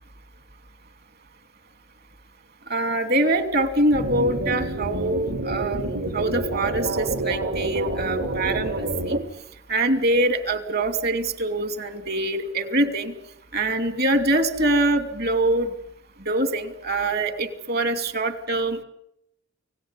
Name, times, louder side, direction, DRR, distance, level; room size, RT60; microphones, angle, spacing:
voice 1, 2.7-9.2 9.7-13.1 13.5-15.7 16.2-18.8, right 1 dB, 45° right, 10 dB, 2.9 m, -24 dB
sound 1, 3.9-9.2, right 2 dB, 65° right, 4.0 m, -28 dB
30.0 x 18.5 x 9.9 m, 0.81 s
head